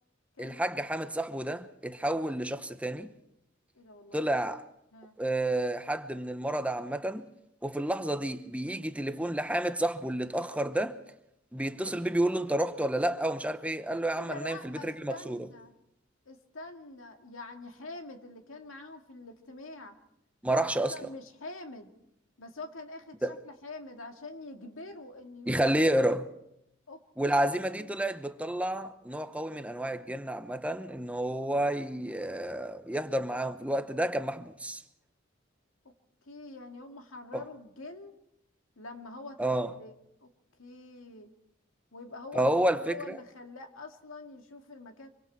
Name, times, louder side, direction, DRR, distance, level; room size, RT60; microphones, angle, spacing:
voice 1, 0.4-3.1 4.1-4.6 5.2-7.3 7.6-11.0 11.5-15.5 20.4-20.9 23.2-23.4 25.5-26.3 27.2-34.8 37.3-37.4 39.4-39.7 42.3-43.2, right 1 dB, 5° right, 0.8 m, -30 dB
voice 2, 3.8-4.3 4.9-5.2 14.1-15.7 16.3-20.0 20.4-21.9 22.4-23.2 23.5-25.7 26.9-27.0 27.3-27.9 36.3-38.2 38.8-39.5 39.8-39.9 40.2-40.3 40.6-41.3 41.9-45.1, left 2 dB, 90° left, 2.1 m, -45 dB
25.5 x 24.5 x 4.5 m
head